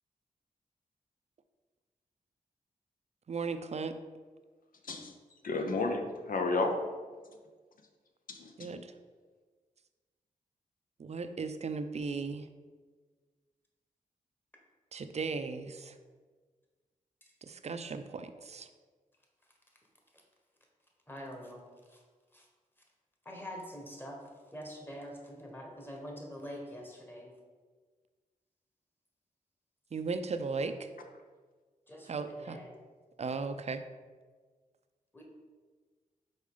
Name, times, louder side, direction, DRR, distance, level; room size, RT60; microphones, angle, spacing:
voice 1, 3.3-4.0 8.6-8.9 11.0-12.5 14.9-16.0 17.4-18.7 29.9-30.9 32.0-32.6 33.2-33.8, right 4 dB, 45° right, 9 dB, 0.5 m, -36 dB
voice 2, 5.4-6.8 8.3-8.7, left 3 dB, 70° left, 4 dB, 0.8 m, -32 dB
voice 3, 21.1-21.6 21.9-22.0 22.3-22.4 23.2-24.2 24.5-27.3 31.9-32.1 32.4-32.7 35.1-35.2, equal, 15° left, 0 dB, 1.5 m, -44 dB
5.3 x 4.6 x 4.9 m, 1.4 s
wide cardioid pair, 90°, 15 cm